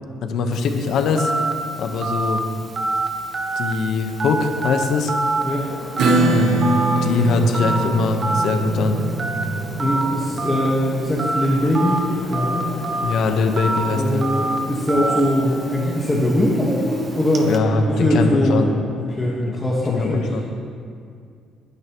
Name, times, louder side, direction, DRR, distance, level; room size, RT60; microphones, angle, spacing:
voice 1, 0.2-1.3 1.8-2.4 3.6-5.1 6.2-6.7 7.0-9.0 13.0-14.2 17.4-18.7 19.5-19.6 19.9-20.4, left 4 dB, 65° left, 4 dB, 1.2 m, -21 dB
Telephone, 0.5-17.6, right 2 dB, 30° right, 1.1 m, -27 dB
sound 1, 5.4-18.7, left 2 dB, 90° left, 2.8 m, -36 dB
Acoustic guitar / Strum, 6.0-13.2, right 2 dB, 70° right, 1.3 m, -24 dB
voice 2, 9.8-12.0 12.3-12.7 13.7-17.5 17.9-18.6 19.0-20.4, equal, 15° left, -5 dB, 1.6 m, -21 dB
20.5 x 10.5 x 3.1 m, 2.3 s
cardioid pair, 135°, 0 cm